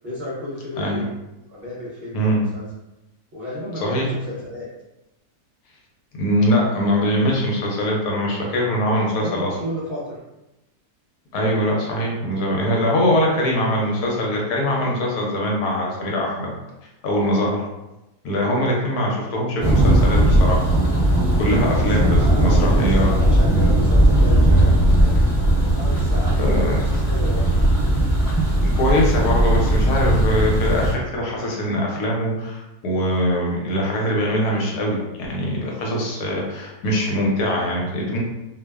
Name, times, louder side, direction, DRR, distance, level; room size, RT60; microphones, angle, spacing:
voice 1, 0.0-1.1 1.5-2.6 3.3-4.7 8.9-10.2 21.6-25.2 25.7-27.5, left 1 dB, 50° right, -10 dB, 0.8 m, -33 dB
voice 2, 3.8-4.1 6.1-9.5 11.3-16.5 17.0-17.6 18.2-20.7 21.0-23.1 26.4-26.7 28.6-35.0 35.3-38.2, equal, 75° left, -2 dB, 1.1 m, -22 dB
Thunder, 19.6-30.9, right 1 dB, 15° left, 0.8 m, -17 dB
2.7 x 2.1 x 2.2 m, 0.97 s
omnidirectional pair, 1.7 m